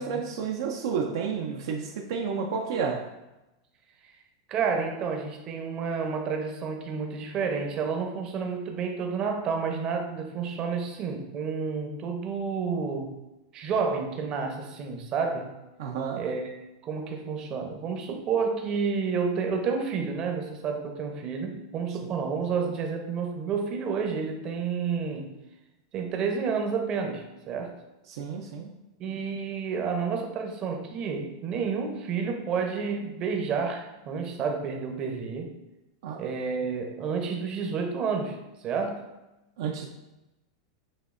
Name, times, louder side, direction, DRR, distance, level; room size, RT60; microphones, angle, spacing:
voice 1, 0.0-3.1 15.8-16.3 28.1-28.7 36.0-36.2 39.6-39.9, right 6 dB, 70° right, 2 dB, 0.4 m, -31 dB
voice 2, 4.5-13.1 13.5-15.5 16.2-25.3 25.9-27.7 29.0-35.5 36.1-38.4 38.6-39.0, right 5 dB, 40° right, 3 dB, 0.7 m, -30 dB
6.2 x 2.7 x 2.5 m, 0.99 s
hypercardioid pair, 115°, 2 cm